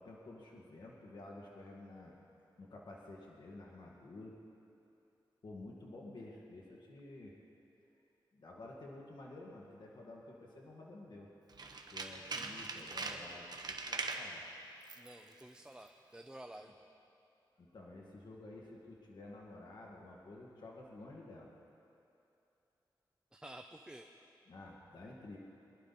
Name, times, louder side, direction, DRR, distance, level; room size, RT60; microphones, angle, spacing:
voice 1, 0.0-2.1 2.6-4.4 5.4-7.3 8.3-11.3 11.9-14.4 16.6-16.7 17.6-21.5 24.5-25.4, left 2 dB, 65° left, -3 dB, 2.0 m, -51 dB
Tools, 11.5-14.3 14.8-15.1 15.4-15.5, right 3 dB, 55° right, 1.1 m, -41 dB
voice 2, 15.0-16.7 23.3-24.1, right 1 dB, 10° right, 4 dB, 0.6 m, -51 dB
22.0 x 11.5 x 4.2 m, 2.8 s
wide cardioid pair, 90°, 8 cm